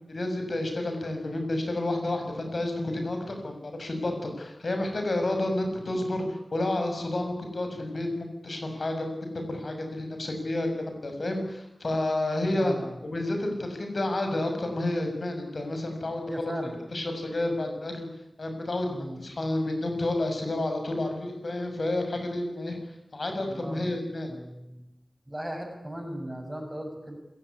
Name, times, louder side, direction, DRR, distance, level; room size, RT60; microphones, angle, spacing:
voice 1, 0.1-9.1 9.5-10.7 11.0-12.7 13.0-16.5 16.9-18.1 18.4-22.8 23.1-24.3, left 1 dB, 60° left, 5 dB, 7.3 m, -30 dB
voice 2, 12.5-13.0 16.3-16.8 18.9-19.2 23.5-23.9 24.3-24.9 25.3-27.2, equal, 15° right, 4 dB, 6.7 m, -37 dB
27.0 x 17.0 x 9.9 m, 0.88 s
wide cardioid pair, 75°, 0 cm